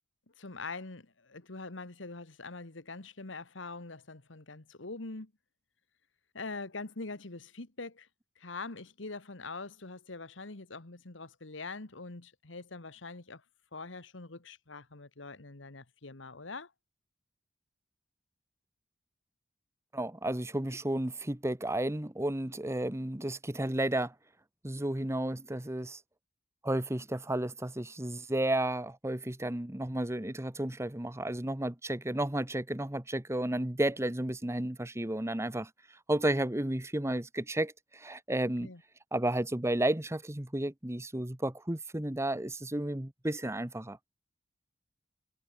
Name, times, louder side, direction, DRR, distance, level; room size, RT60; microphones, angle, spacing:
voice 1, 0.4-5.3 6.3-8.1 8.4-13.4 13.7-16.7 38.4-38.8, left 3 dB, 80° left, 1.7 m, -43 dB
voice 2, 19.9-24.1 24.6-26.0 26.6-35.7 36.1-38.7 39.1-44.0, right 1 dB, 15° right, 1.2 m, -32 dB
head